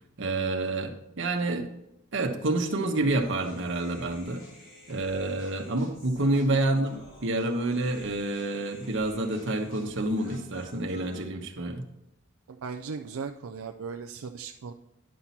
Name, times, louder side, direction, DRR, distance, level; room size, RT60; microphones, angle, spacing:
voice 1, 0.2-1.7 2.1-4.4 4.9-11.9, right 2 dB, 60° right, 4 dB, 1.1 m, -28 dB
sound 1, 2.9-10.8, equal, 80° left, 3.0 m, -54 dB
Human voice, 3.2-11.2, equal, 35° left, 3.3 m, -53 dB
voice 2, 12.5-14.7, right 5 dB, 80° right, 4 dB, 0.5 m, -37 dB
10.5 x 5.9 x 4.2 m, 0.85 s
head